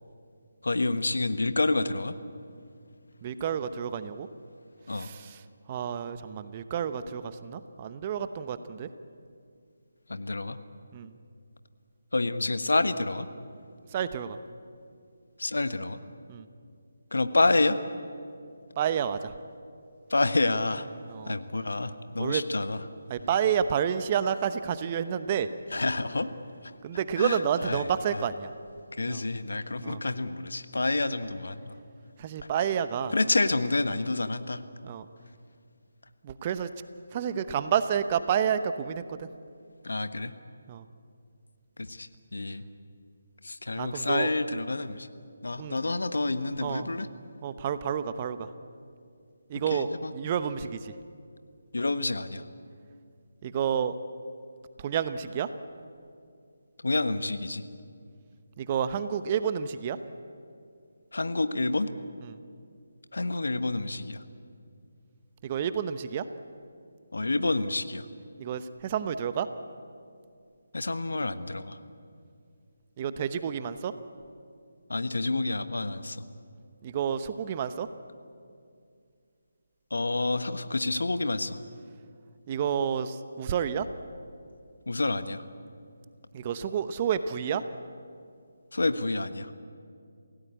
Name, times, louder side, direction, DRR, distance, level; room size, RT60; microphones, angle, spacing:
voice 1, 0.6-2.1 4.9-5.1 10.1-10.6 12.1-13.3 15.4-16.0 17.1-17.8 20.1-20.9 21.3-22.8 25.7-26.3 27.2-27.9 28.1-28.2 29.0-31.8 33.1-34.6 39.8-40.3 41.8-42.6 43.4-45.1 45.4-47.1 49.7-50.1 51.7-52.4 56.8-57.6 61.1-61.9 63.1-64.2 67.1-68.1 70.7-71.8 74.9-76.2 79.9-81.6 84.9-85.4 88.7-89.5, left 2 dB, 70° left, 11 dB, 1.3 m, -28 dB
voice 2, 3.2-4.3 4.9-5.4 5.7-8.9 10.9-11.1 13.9-14.4 16.3-16.5 18.8-19.3 21.1-21.4 22.2-22.4 23.1-25.5 26.8-28.5 29.1-29.2 29.8-30.0 32.2-33.1 34.8-35.0 36.2-36.7 37.1-39.3 40.7-40.8 43.8-44.3 45.6-45.8 46.6-46.9 47.4-48.5 49.5-50.9 53.4-54.0 54.8-55.5 58.6-60.0 62.2-62.4 65.4-66.2 68.4-69.5 73.0-73.9 76.8-77.9 82.5-83.9 86.3-87.6, right 8 dB, 30° right, 12 dB, 0.9 m, -30 dB
27.5 x 17.0 x 8.4 m, 2.4 s
figure-of-eight pair, 150°, 0 cm